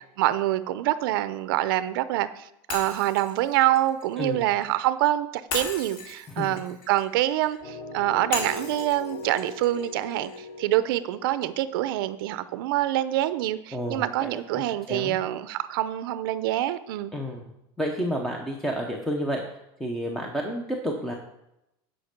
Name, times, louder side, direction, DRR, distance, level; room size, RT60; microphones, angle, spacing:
voice 1, 0.2-17.1, right 14 dB, 65° right, 13 dB, 0.6 m, -26 dB
Shatter, 2.7-4.8 5.5-7.6 8.3-10.4, left 3 dB, 60° left, 2.3 m, -37 dB
voice 2, 6.3-6.6 13.7-15.2 17.1-17.4 17.8-19.4 19.8-21.1, equal, 5° left, 1 dB, 0.6 m, -30 dB
sound 1, 7.6-13.5, left 3 dB, 35° left, 4.3 m, -41 dB
9.8 x 5.3 x 6.6 m, 0.84 s
supercardioid pair, 180°, 12 cm